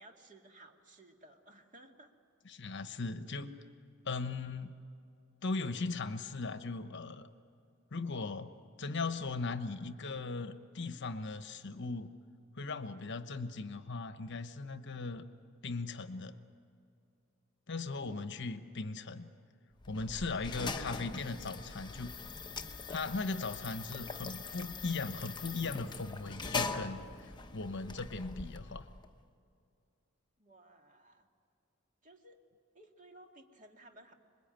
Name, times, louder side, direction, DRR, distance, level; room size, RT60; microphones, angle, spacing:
voice 1, 0.0-2.1 18.1-18.3 30.4-31.3 32.0-32.4 32.7-34.1, right 1 dB, 40° right, 3 dB, 2.1 m, -57 dB
voice 2, 2.4-3.5 4.0-4.7 5.4-7.3 7.9-8.5 8.8-12.1 12.5-15.2 15.6-16.4 17.7-19.3 19.9-22.1 22.9-28.9, left 3 dB, 60° left, 10 dB, 1.1 m, -38 dB
sound 1, 19.8-29.1, left 4 dB, 20° left, 1.0 m, -42 dB
26.0 x 21.5 x 9.1 m, 2.4 s
head